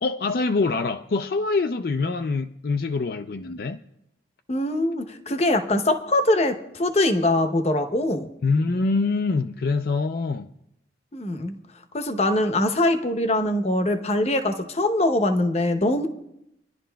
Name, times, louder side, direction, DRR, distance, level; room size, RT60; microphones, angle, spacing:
voice 1, 0.0-3.8 8.4-10.5, left 3 dB, 55° left, 0.4 m, -24 dB
voice 2, 4.5-8.3 11.1-11.6 11.9-16.1, left 1 dB, 35° left, 0.8 m, -23 dB
26.5 x 11.0 x 2.3 m
head